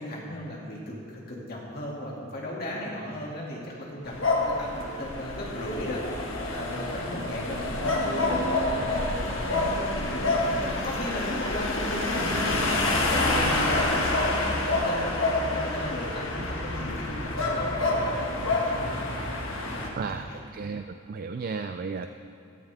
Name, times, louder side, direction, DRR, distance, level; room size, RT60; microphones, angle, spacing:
voice 1, 0.0-9.8 10.1-18.9 19.2-20.4, left 1 dB, 45° left, -4 dB, 2.5 m, -36 dB
sound 1, 4.0-19.9, left 2 dB, 60° left, 1.7 m, -27 dB
voice 2, 20.0-22.1, right 5 dB, 40° right, 8 dB, 0.3 m, -34 dB
15.0 x 14.0 x 3.6 m, 2.5 s
head